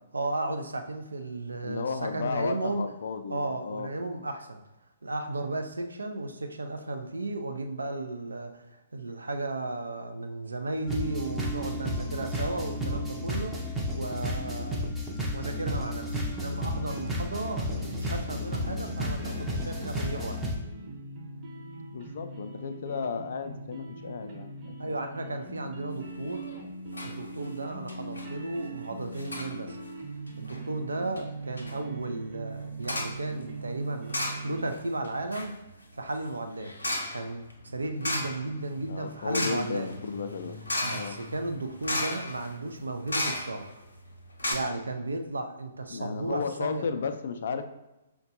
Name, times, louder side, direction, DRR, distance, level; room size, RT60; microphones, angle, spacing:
voice 1, 0.1-2.8 3.3-4.6 5.0-13.6 13.9-14.9 15.3-20.4 24.8-26.4 27.0-29.8 30.4-34.2 34.4-35.5 36.0-36.7 37.1-39.9 40.8-43.8 44.5-46.9, right 2 dB, 75° right, 7 dB, 0.4 m, -34 dB
voice 2, 1.6-3.9 21.9-25.0 38.9-40.6 40.9-41.2 45.9-47.6, left 5 dB, 55° left, 8 dB, 0.3 m, -34 dB
sound 1, 10.9-20.6, equal, 5° right, 0.6 m, -32 dB
sound 2, 16.3-34.6, right 2 dB, 25° right, 1.0 m, -41 dB
sound 3, 26.3-26.6 26.9-27.2 27.4-27.5 27.9-28.3 29.1-29.5 30.3-30.6 31.2-31.3 31.6-31.8 32.8-33.2 34.1-34.8 35.0-43.8 44.1-44.2 44.4-44.5, left 1 dB, 75° left, 0.7 m, -35 dB
5.6 x 2.2 x 2.8 m, 0.99 s
figure-of-eight pair, 125°, 0 cm